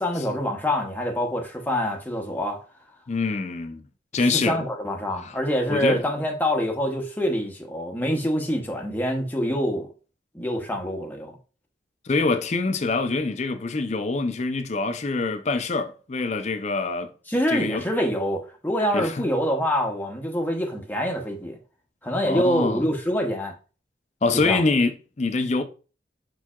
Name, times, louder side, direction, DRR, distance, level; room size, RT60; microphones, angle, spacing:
voice 1, 0.0-2.6 4.3-9.9 10.3-11.4 17.3-21.6 22.0-23.5 24.4-24.6, equal, 10° left, 0.8 m, -25 dB
voice 2, 3.1-3.8 4.1-4.7 5.2-5.4 5.7-6.0 12.0-17.1 17.5-17.8 18.9-19.3 22.2-22.8 24.2-25.6, left 3 dB, 40° left, 0.5 m, -25 dB
4.6 x 4.5 x 2.3 m
head